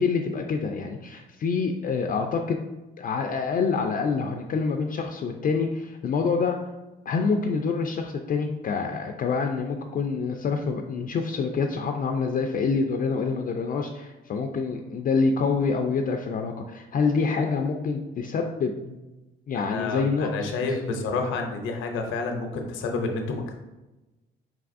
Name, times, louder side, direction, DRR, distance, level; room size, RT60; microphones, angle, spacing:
voice 1, 0.0-2.6 3.0-6.6 7.1-19.0 19.5-20.3, left 5 dB, 45° left, 3 dB, 0.4 m, -26 dB
voice 2, 19.5-23.5, left 3 dB, 85° left, 3 dB, 0.6 m, -29 dB
4.5 x 3.4 x 2.5 m, 1.1 s
cardioid pair, 90°, 20 cm